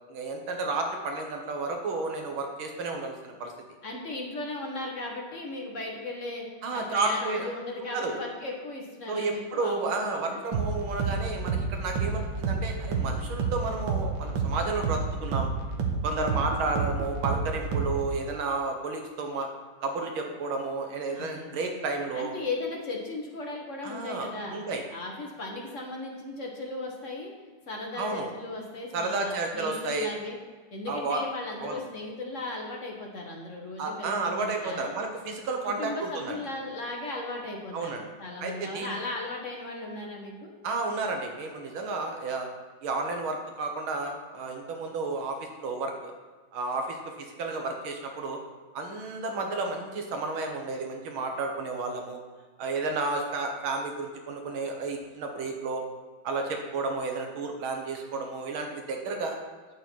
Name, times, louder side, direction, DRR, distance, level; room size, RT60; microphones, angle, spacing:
voice 1, 0.1-3.5 6.6-7.5 7.9-8.2 9.1-15.5 16.0-19.5 19.8-22.3 23.8-24.8 28.0-28.3 28.9-30.1 30.9-31.2 31.6-31.8 33.8-36.4 37.7-38.0 38.4-39.0 40.6-42.5 42.8-46.1 46.5-48.4 48.7-52.2 52.6-55.8 56.2-59.4, right 3 dB, 90° right, 3 dB, 2.0 m, -32 dB
voice 2, 3.8-6.5 6.7-10.4 21.1-21.5 22.1-24.6 24.9-27.3 27.7-30.4 30.7-34.9 35.6-37.9 38.2-40.5, left 2 dB, 40° left, -1 dB, 1.5 m, -36 dB
sound 1, 10.5-18.2, right 4 dB, 70° right, 1.7 m, -30 dB
9.4 x 6.9 x 4.5 m, 1.4 s
omnidirectional pair, 2.2 m